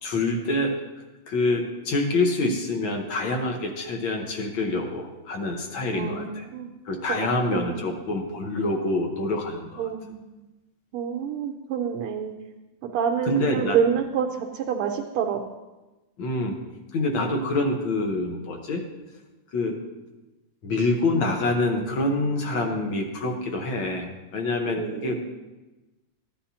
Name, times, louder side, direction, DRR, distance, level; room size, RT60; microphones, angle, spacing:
voice 1, 0.0-0.8 1.3-6.5 6.9-9.9 13.3-13.8 16.2-16.6 16.9-18.8 19.5-19.8 20.6-25.2, left 2 dB, 65° left, 3 dB, 1.9 m, -26 dB
voice 2, 5.9-6.7 7.1-7.9 9.8-10.1 10.9-12.3 12.8-15.4 24.7-25.2, right 7 dB, 85° right, 2 dB, 1.6 m, -27 dB
14.5 x 9.8 x 2.8 m, 1.1 s
omnidirectional pair, 2.3 m